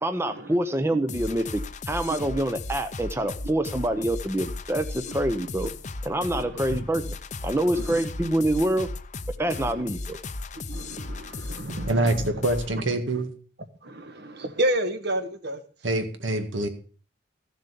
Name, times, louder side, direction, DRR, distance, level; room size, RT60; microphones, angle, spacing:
voice 1, 0.0-5.7 6.0-7.0 7.4-8.9 9.4-10.2, right 1 dB, 15° right, 8 dB, 0.8 m, -26 dB
sound 1, 1.1-12.8, left 3 dB, 35° left, 0.7 m, -36 dB
voice 2, 6.3-6.8 7.7-8.0 9.5-9.8 10.5-12.4 12.7-12.8 13.8-15.6, right 1 dB, 55° right, 9 dB, 1.6 m, -31 dB
voice 3, 11.9-13.3 15.8-16.7, right 1 dB, 75° right, 6 dB, 2.0 m, -25 dB
14.5 x 7.4 x 6.9 m, 0.41 s
head